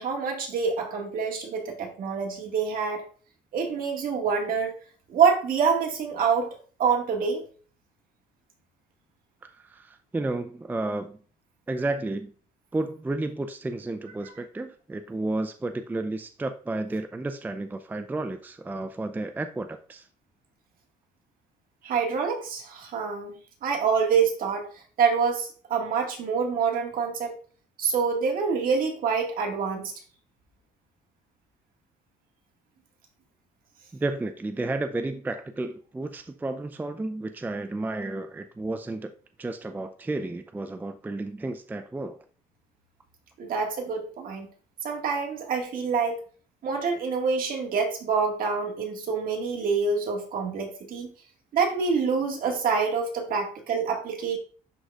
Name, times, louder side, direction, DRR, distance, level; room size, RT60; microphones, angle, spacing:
voice 1, 0.0-3.0 3.5-4.7 5.1-6.5 6.8-7.4 21.8-23.4 23.6-24.7 25.0-27.3 27.8-29.9 43.4-44.5 44.8-46.2 46.6-51.1 51.5-54.4, right 5 dB, 55° right, 0 dB, 1.8 m, -26 dB
voice 2, 9.4-11.2 11.7-12.3 12.7-20.1 33.9-39.1 39.4-42.2, right 2 dB, 10° right, 8 dB, 0.4 m, -32 dB
11.5 x 3.9 x 2.4 m, 0.42 s
cardioid pair, 110°, 17 cm